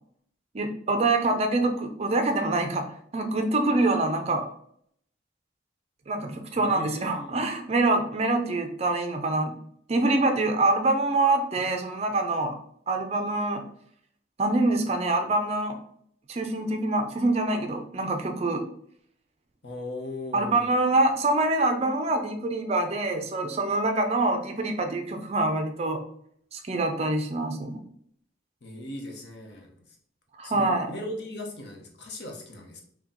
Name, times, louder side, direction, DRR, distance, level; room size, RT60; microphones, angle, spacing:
voice 1, 0.5-2.9 3.1-4.5 6.1-9.5 9.9-12.6 12.9-13.6 14.4-15.8 16.3-18.6 20.3-26.0 26.5-27.8 30.4-30.9, right 2 dB, 35° right, 5 dB, 0.4 m, -25 dB
voice 2, 6.6-7.4 19.6-20.7 28.6-29.7 30.4-32.8, left 1 dB, 60° left, 1 dB, 0.9 m, -38 dB
4.3 x 2.2 x 3.7 m, 0.65 s
head